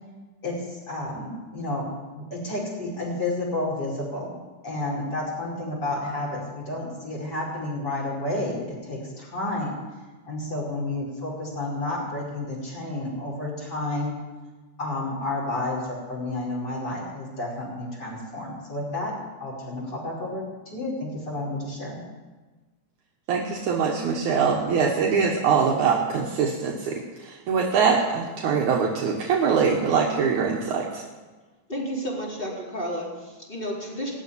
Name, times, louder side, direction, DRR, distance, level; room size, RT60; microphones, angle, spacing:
voice 1, 0.4-4.4 4.6-9.8 10.3-14.1 14.8-19.1 19.4-22.0, left 2 dB, 30° left, -4 dB, 5.5 m, -31 dB
voice 2, 23.3-31.0, right 6 dB, 70° right, -2 dB, 2.7 m, -23 dB
voice 3, 31.7-34.1, equal, 15° left, -4 dB, 4.2 m, -31 dB
19.5 x 7.2 x 9.9 m, 1.3 s
omnidirectional pair, 3.7 m